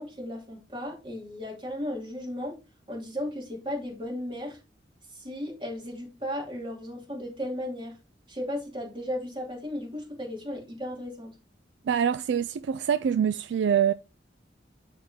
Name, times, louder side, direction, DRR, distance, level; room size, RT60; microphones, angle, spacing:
voice 1, 0.0-2.6 2.9-4.6 5.1-8.0 8.3-11.3, left 1 dB, 30° right, 2.8 m, -35 dB
voice 2, 11.9-13.9, right 8 dB, 75° right, 0.3 m, -25 dB
11.0 x 3.7 x 3.6 m
head